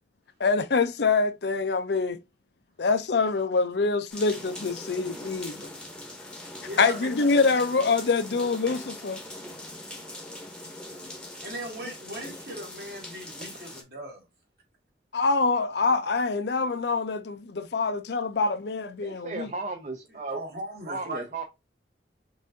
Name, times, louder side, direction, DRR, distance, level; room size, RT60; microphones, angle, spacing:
voice 1, 0.4-2.2 2.8-5.7 6.8-9.2 15.1-19.5, left 4 dB, 70° left, 0.5 m, -25 dB
sound 1, 4.1-13.8, left 1 dB, 5° left, 0.8 m, -41 dB
voice 2, 6.6-7.3 9.5-10.8 11.4-14.2 20.3-21.3, right 1 dB, 60° right, 1.9 m, -39 dB
voice 3, 19.0-20.4 20.9-21.4, right 3 dB, 40° right, 0.5 m, -35 dB
5.5 x 2.6 x 2.6 m
head